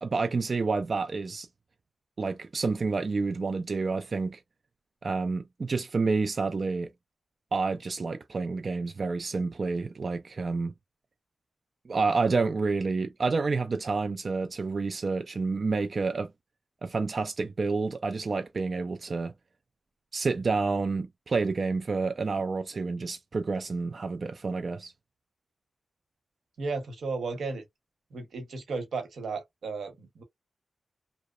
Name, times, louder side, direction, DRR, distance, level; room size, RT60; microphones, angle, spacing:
voice 1, 0.0-1.5 2.2-4.4 5.0-6.9 7.5-10.7 11.9-16.3 16.8-19.3 20.1-24.9, right 4 dB, 50° right, 0.3 m, -29 dB
voice 2, 26.6-27.6 28.1-30.2, right 4 dB, 85° right, 0.9 m, -34 dB
2.8 x 2.0 x 2.3 m
wide cardioid pair, 110°, 0 cm